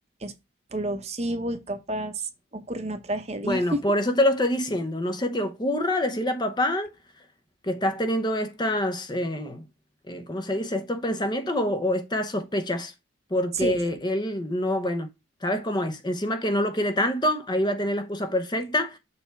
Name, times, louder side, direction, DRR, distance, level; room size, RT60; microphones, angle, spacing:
voice 1, 0.7-3.8 13.5-13.8, right 1 dB, 30° right, 0.9 m, -30 dB
voice 2, 3.4-6.9 7.6-9.6 10.1-12.9 13.3-15.1 15.4-19.0, left 1 dB, 20° left, 0.7 m, -26 dB
6.8 x 3.4 x 4.6 m
head